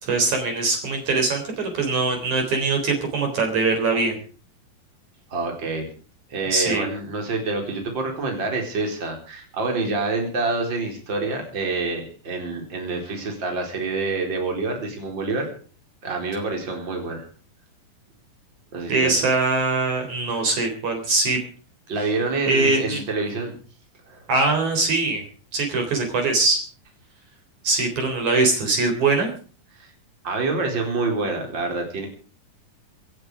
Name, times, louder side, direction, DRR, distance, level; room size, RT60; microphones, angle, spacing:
voice 1, 0.0-4.2 6.5-6.9 18.9-21.4 22.5-23.0 24.3-25.2 25.5-26.6 27.6-29.3, right 3 dB, 55° right, 4 dB, 5.0 m, -22 dB
voice 2, 5.3-5.9 6.3-15.5 16.0-17.3 18.7-19.2 21.9-23.5 24.1-24.2 29.7-29.9 30.2-32.1, right 3 dB, 30° right, 2 dB, 4.8 m, -27 dB
27.0 x 9.0 x 4.9 m, 0.40 s
omnidirectional pair, 4.1 m